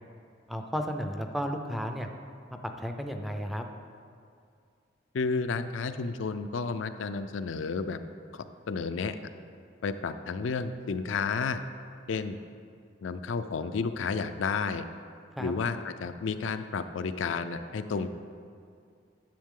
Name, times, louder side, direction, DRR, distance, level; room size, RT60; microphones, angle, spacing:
voice 1, 0.5-2.1 2.6-3.6 15.4-15.5, equal, ahead, 4 dB, 0.4 m, -33 dB
voice 2, 5.1-8.0 8.3-9.2 9.8-11.6 12.1-12.4 13.0-14.9 15.4-18.1, left 4 dB, 75° left, 10 dB, 0.4 m, -31 dB
10.5 x 7.2 x 3.7 m, 2.3 s
head